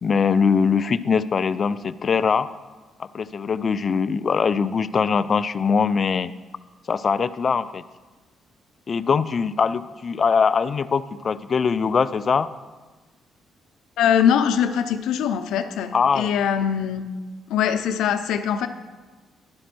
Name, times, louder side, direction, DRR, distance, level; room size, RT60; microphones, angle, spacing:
voice 1, 0.0-2.5 3.1-6.3 6.9-7.8 8.9-12.5 15.9-16.3, left 5 dB, 45° left, 14 dB, 0.4 m, -22 dB
voice 2, 14.0-17.1 17.5-18.7, left 8 dB, 85° left, 9 dB, 0.6 m, -22 dB
11.5 x 5.0 x 6.1 m, 1.3 s
cardioid pair, 90°, 0 cm